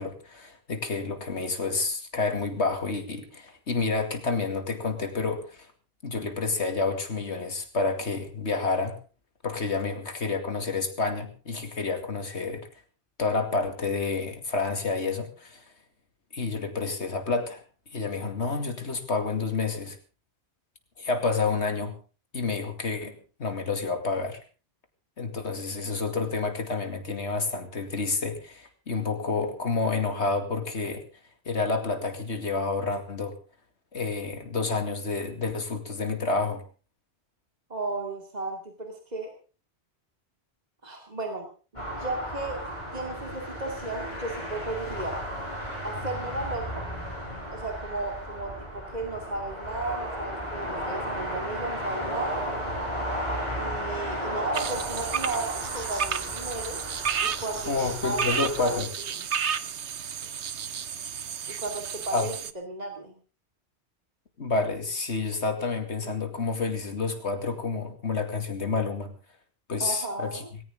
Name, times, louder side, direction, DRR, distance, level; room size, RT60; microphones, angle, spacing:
voice 1, 0.0-5.7 6.0-9.0 9.4-12.7 13.2-15.6 16.3-17.6 17.9-20.0 21.0-22.0 22.3-24.4 25.2-31.0 31.5-33.3 33.9-36.6 57.7-58.9 62.1-62.3 64.4-69.1 69.7-70.4, left 4 dB, 85° left, 6 dB, 2.7 m, -29 dB
voice 2, 37.7-39.3 40.8-41.5 41.7-45.2 45.8-46.9 47.5-52.4 53.6-56.8 57.2-58.8 59.2-59.3 61.5-62.3 62.7-63.1 69.8-70.5, right 2 dB, 40° right, 3 dB, 2.6 m, -34 dB
sound 1, 41.8-58.8, equal, 30° left, 7.1 m, -34 dB
sound 2, 54.5-62.5, right 7 dB, 85° right, 1.2 m, -32 dB
19.0 x 17.5 x 3.7 m, 0.35 s
omnidirectional pair, 1.1 m